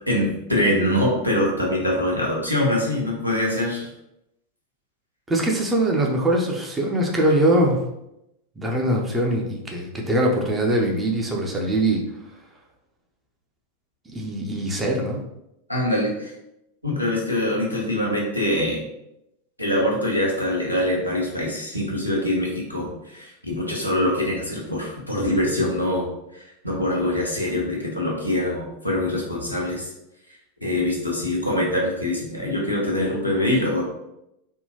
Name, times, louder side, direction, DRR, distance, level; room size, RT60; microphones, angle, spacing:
voice 1, 0.1-3.9 15.7-16.3 16.8-18.8 19.6-29.9 30.6-33.9, left 1 dB, 90° left, -4 dB, 0.8 m, -24 dB
voice 2, 5.3-7.8 8.6-12.0 14.1-15.2, right 1 dB, 15° right, 0 dB, 0.6 m, -22 dB
3.6 x 2.2 x 2.8 m, 0.84 s
figure-of-eight pair, 90°, 0 cm